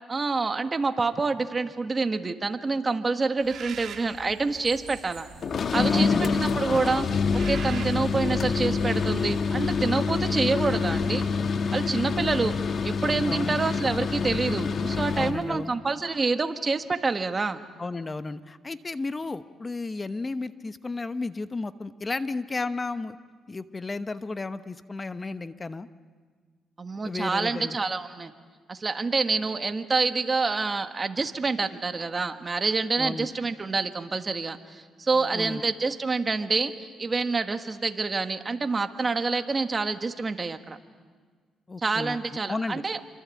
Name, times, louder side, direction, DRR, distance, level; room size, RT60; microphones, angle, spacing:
voice 1, 0.1-5.3 5.7-11.2 11.7-12.5 12.8-17.6 26.8-28.3 28.7-36.7 37.0-40.8 41.8-43.0, right 4 dB, 30° right, 7 dB, 1.6 m, -27 dB
Bird, 3.4-9.8, right 7 dB, 65° right, 1.7 m, -43 dB
sound 1, 5.4-15.4, left 5 dB, 50° left, 1.4 m, -26 dB
voice 2, 5.9-6.5 13.3-13.6 15.1-15.7 17.8-23.2 23.5-25.9 27.0-27.8 33.0-33.3 35.2-35.7 41.7-42.2 42.5-42.8, left 3 dB, 25° left, 12 dB, 1.0 m, -33 dB
27.0 x 25.0 x 8.5 m, 1.5 s
cardioid pair, 90°, 0 cm